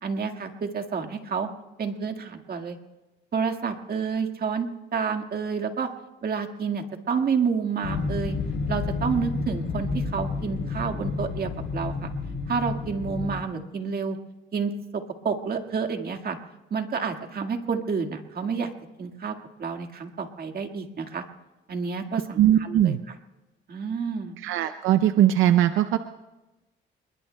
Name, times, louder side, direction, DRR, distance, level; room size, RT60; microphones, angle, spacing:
voice 1, 0.0-1.5 1.8-2.8 3.3-5.9 6.2-8.4 8.7-12.1 12.5-14.2 14.5-16.4 16.7-18.7 19.0-19.3 19.6-21.2 21.7-22.9 23.7-24.4, right 5 dB, 50° right, 5 dB, 1.8 m, -29 dB
sound 1, 7.8-13.3, left 4 dB, 70° left, 4.0 m, -30 dB
voice 2, 22.4-23.0 24.4-26.0, right 11 dB, 85° right, 10 dB, 0.6 m, -20 dB
29.0 x 21.0 x 2.3 m, 1.1 s
cardioid pair, 90°, 20 cm